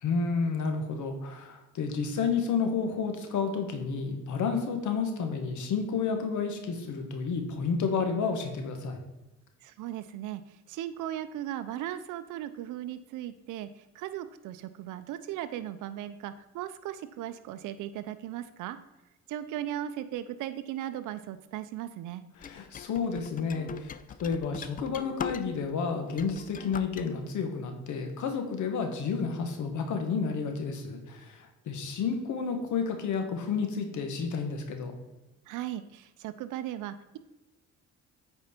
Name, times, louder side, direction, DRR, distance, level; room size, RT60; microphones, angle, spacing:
voice 1, 0.0-9.0 22.4-34.9, left 5 dB, 75° left, 5 dB, 1.4 m, -31 dB
voice 2, 9.6-18.8 19.3-22.2 35.5-37.2, right 12 dB, 85° right, 11 dB, 0.5 m, -37 dB
sound 1, 22.4-25.7 26.1-27.1, left 7 dB, 30° left, 0.4 m, -40 dB
8.7 x 4.4 x 4.3 m, 1.1 s
cardioid pair, 90°, 30 cm